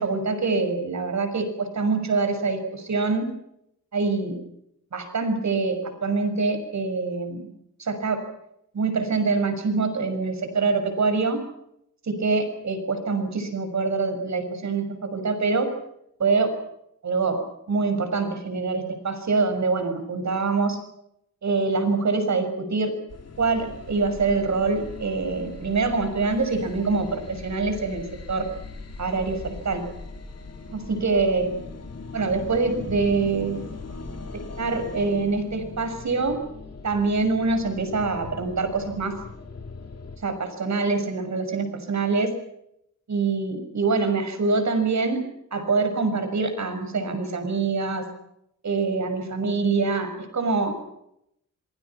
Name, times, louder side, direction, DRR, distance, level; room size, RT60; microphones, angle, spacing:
voice 1, 0.0-3.3 3.9-4.4 4.9-7.4 7.8-8.2 8.7-11.4 12.0-15.7 16.2-16.5 17.0-17.4 17.7-20.8 21.4-22.9 23.4-28.5 29.0-29.8 30.7-31.5 32.1-33.6 34.6-36.4 36.8-39.2 40.2-42.3 43.1-45.2 45.5-48.0 48.6-50.7, right 4 dB, 55° right, 8 dB, 6.4 m, -25 dB
sound 1, 23.1-40.2, left 3 dB, 50° left, 3.6 m, -40 dB
27.5 x 23.5 x 6.0 m, 0.77 s
wide cardioid pair, 170°, 33 cm